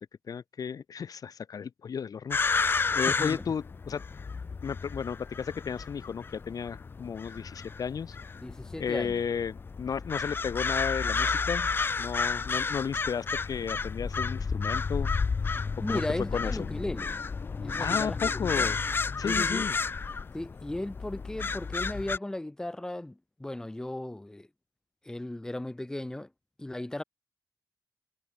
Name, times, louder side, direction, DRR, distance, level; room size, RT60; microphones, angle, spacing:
voice 1, 0.3-4.0 4.6-8.2 8.8-15.1 15.9-16.0 16.3-16.7 17.8-18.8 19.2-19.8, left 7 dB, 55° left, 2.2 m, -34 dB
sound 1, 2.3-22.2, left 5 dB, 30° left, 0.4 m, -31 dB
voice 2, 2.9-3.4 8.4-9.2 15.8-17.2 17.5-18.2 18.6-18.7 19.2-19.7 20.3-24.5 25.0-26.3 26.6-27.0, left 1 dB, 10° left, 1.0 m, -36 dB
wide cardioid pair, 180°, 8 cm